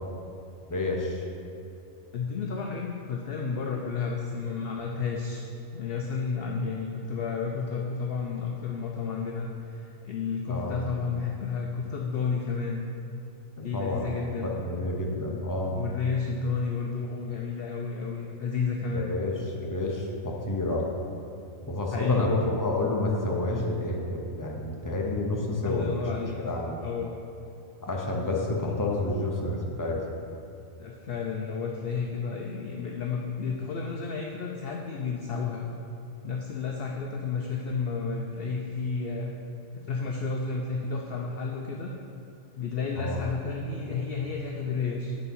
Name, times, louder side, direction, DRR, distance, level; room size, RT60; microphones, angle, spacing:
voice 1, 0.7-1.2 10.5-10.9 13.6-14.1 14.4-15.8 18.9-20.9 21.7-26.0 26.5-26.8 27.8-30.0 43.0-43.2, left 2 dB, 20° left, -1 dB, 0.6 m, -29 dB
voice 2, 2.1-5.5 5.7-12.8 13.6-14.6 15.7-19.1 21.9-22.4 25.6-26.4 26.8-27.1 30.8-35.7 36.2-39.3 39.7-41.9 42.6-45.1, left 5 dB, 60° left, 0 dB, 0.7 m, -31 dB
8.3 x 4.2 x 5.4 m, 2.6 s
omnidirectional pair, 1.4 m